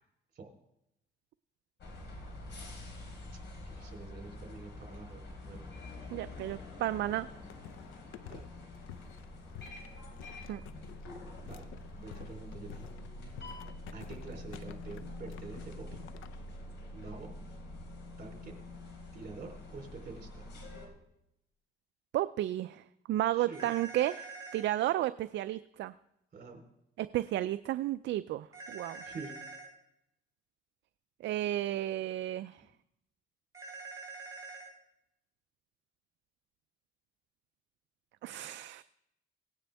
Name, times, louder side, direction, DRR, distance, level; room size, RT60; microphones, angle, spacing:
sound 1, 1.8-20.9, left 2 dB, 65° left, 3.7 m, -46 dB
voice 1, 3.6-5.7 6.0-6.2 6.5-6.7 8.2-8.4 11.4-11.7 12.0-12.8 13.9-16.0 16.9-17.3 18.2-18.6 19.1-20.5 23.3-23.7 26.3-26.6 29.0-29.3, right 4 dB, 45° right, 2 dB, 3.4 m, -47 dB
voice 2, 6.1-7.3 10.5-10.6 22.1-24.3 24.5-25.9 27.0-29.0 31.2-32.6 38.2-38.8, right 14 dB, 65° right, 13 dB, 0.4 m, -33 dB
sound 2, 7.3-16.5, left 11 dB, 90° left, 0.6 m, -52 dB
sound 3, 23.5-24.7 28.5-29.7 33.5-34.7, right 4 dB, 20° right, 3.5 m, -45 dB
18.0 x 9.6 x 3.4 m, 0.82 s
cardioid pair, 90°, 20 cm